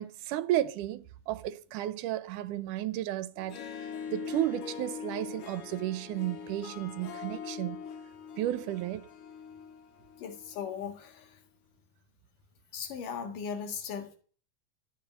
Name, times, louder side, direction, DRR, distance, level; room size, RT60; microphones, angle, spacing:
voice 1, 0.0-7.8 8.4-9.1, right 14 dB, 80° right, 2.3 m, -33 dB
Harp, 3.4-10.8, left 7 dB, 70° left, 2.5 m, -42 dB
voice 2, 10.2-11.4 12.7-14.2, left 7 dB, 90° left, 3.4 m, -38 dB
13.0 x 6.7 x 9.0 m
omnidirectional pair, 3.6 m